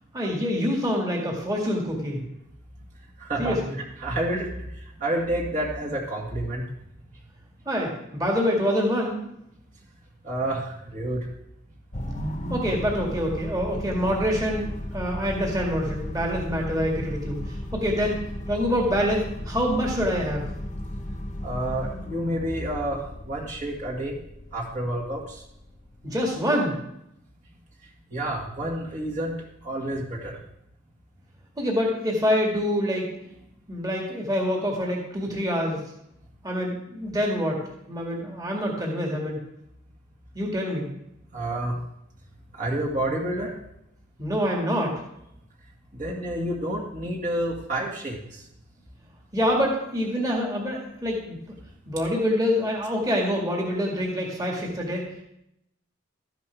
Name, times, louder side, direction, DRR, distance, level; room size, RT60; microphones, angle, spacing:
voice 1, 0.1-2.2 3.4-3.8 7.7-9.2 12.5-18.2 18.5-20.5 26.0-26.8 31.6-33.1 33.7-35.8 36.4-37.6 37.9-39.4 40.3-40.9 44.2-45.0 49.3-51.4 51.9-55.0, equal, 20° right, -2 dB, 2.0 m, -26 dB
voice 2, 3.2-3.6 4.0-4.5 5.0-6.7 10.2-11.3 21.4-24.2 24.5-25.4 28.1-29.3 29.6-30.4 41.3-41.7 42.6-43.5 45.9-48.4, right 1 dB, 40° right, -3 dB, 1.9 m, -29 dB
sound 1, 11.9-26.4, left 1 dB, 35° left, 1.1 m, -35 dB
13.0 x 10.0 x 3.4 m, 0.79 s
head